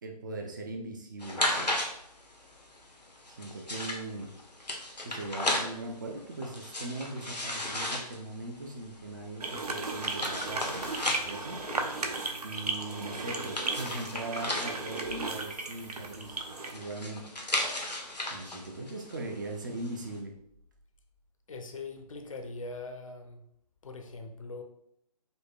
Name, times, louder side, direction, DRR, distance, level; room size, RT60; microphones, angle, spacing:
voice 1, 0.0-1.5 3.3-4.3 5.0-11.6 12.4-17.3 18.3-20.3, right 2 dB, 30° right, 2 dB, 0.5 m, -40 dB
sound 1, 1.2-20.1, left 1 dB, 85° left, 1.1 m, -36 dB
sound 2, 9.4-16.7, right 3 dB, 70° right, 0.8 m, -35 dB
voice 2, 21.5-23.4 23.8-24.6, left 3 dB, 55° left, 5 dB, 0.7 m, -41 dB
5.1 x 2.2 x 4.5 m, 0.71 s
figure-of-eight pair, 145°, 21 cm